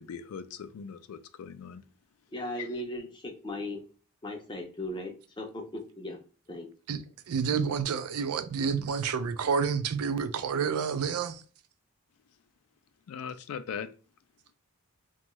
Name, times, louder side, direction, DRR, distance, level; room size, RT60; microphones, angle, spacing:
voice 1, 0.0-1.8 2.6-2.7 13.1-13.9, left 7 dB, 80° left, 0.3 m, -39 dB
voice 2, 2.3-3.8 4.2-6.2 6.5-6.7, left 1 dB, 20° left, 0.4 m, -37 dB
voice 3, 6.9-11.4, right 6 dB, 90° right, 0.4 m, -29 dB
2.6 x 2.2 x 3.0 m
head